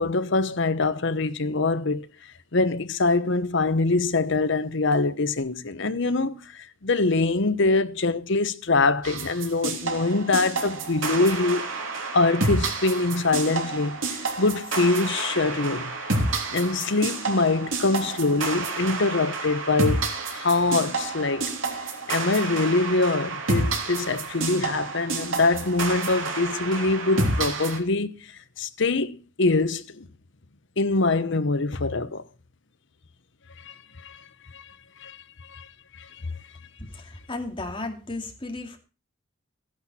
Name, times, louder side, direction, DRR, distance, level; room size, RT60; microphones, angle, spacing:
voice 1, 0.0-2.1 2.5-11.7 12.1-15.9 16.5-21.5 22.1-30.1 30.8-32.2 33.6-33.7 34.0-34.2 34.5-34.6 35.0-35.7 35.9-36.3, left 3 dB, 65° left, 1.0 m, -24 dB
sound 1, 9.0-27.8, right 3 dB, 75° right, 3.2 m, -29 dB
voice 2, 36.8-38.8, left 2 dB, 25° left, 2.6 m, -34 dB
15.0 x 10.5 x 4.3 m
head